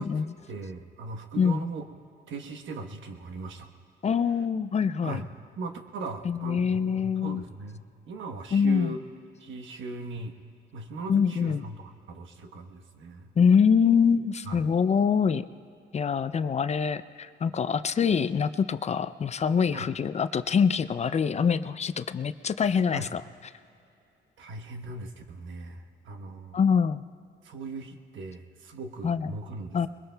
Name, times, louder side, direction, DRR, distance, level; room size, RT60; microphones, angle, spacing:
voice 1, 0.0-1.9 2.3-3.7 5.0-5.3 5.6-9.0 9.4-10.4 10.7-13.3 14.5-14.6 19.7-19.9 22.9-23.1 24.4-26.6 27.4-29.8, right 3 dB, 75° right, 5 dB, 1.2 m, -39 dB
voice 2, 4.0-5.2 6.2-7.4 8.5-9.0 11.1-11.6 13.4-15.4 15.9-23.2 26.5-27.0 29.0-29.3 29.7-29.9, left 6 dB, 35° left, 13 dB, 0.4 m, -24 dB
22.0 x 21.5 x 2.3 m, 2.7 s
cardioid pair, 90°, 20 cm